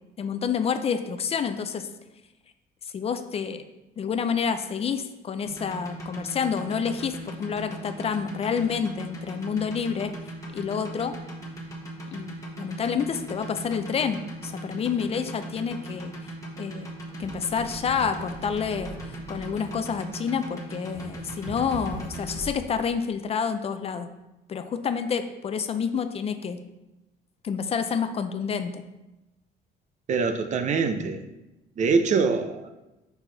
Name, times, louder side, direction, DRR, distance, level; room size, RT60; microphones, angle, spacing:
voice 1, 0.2-1.9 2.9-3.6 4.0-10.1 10.5-11.1 12.1-16.1 16.6-16.9 17.2-24.1 24.5-26.6 27.4-28.8, left 6 dB, 35° left, 9 dB, 0.4 m, -28 dB
sound 1, 5.4-22.4, right 2 dB, 20° left, 1.4 m, -38 dB
sound 2, 16.9-23.0, right 2 dB, 20° right, 1.7 m, -42 dB
voice 2, 30.1-31.2 31.8-32.7, right 4 dB, 45° right, 8 dB, 0.6 m, -24 dB
5.5 x 4.6 x 3.9 m, 0.99 s
cardioid pair, 110°, 17 cm